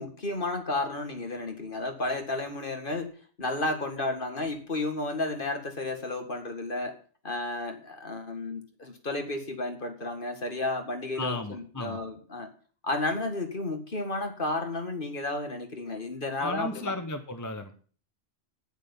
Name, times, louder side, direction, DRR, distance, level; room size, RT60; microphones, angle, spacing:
voice 1, 0.0-3.1 3.4-7.0 7.2-12.5 12.8-16.9, left 2 dB, 40° left, 5 dB, 2.2 m, -32 dB
voice 2, 11.2-12.0 16.4-17.8, left 2 dB, 15° left, 8 dB, 0.9 m, -34 dB
9.4 x 9.0 x 7.1 m, 0.43 s
omnidirectional pair, 1.3 m